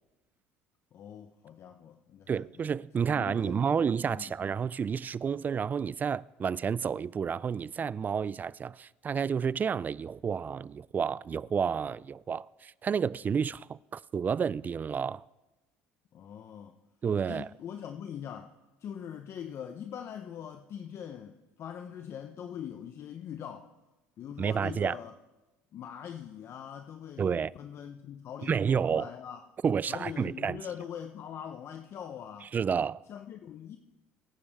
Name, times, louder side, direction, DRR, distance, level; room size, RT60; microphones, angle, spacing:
voice 1, 0.9-2.4 3.0-4.3 16.1-16.8 17.2-23.7 24.2-25.1 25.7-29.4 29.9-32.5 33.1-33.8, left 8 dB, 50° left, 0.8 m, -42 dB
voice 2, 2.3-15.3 17.0-17.5 24.4-25.0 27.2-27.5 28.4-29.1 29.6-30.6 32.5-33.0, right 6 dB, 30° right, 0.3 m, -30 dB
23.5 x 9.6 x 3.6 m
supercardioid pair, 85°, 6 cm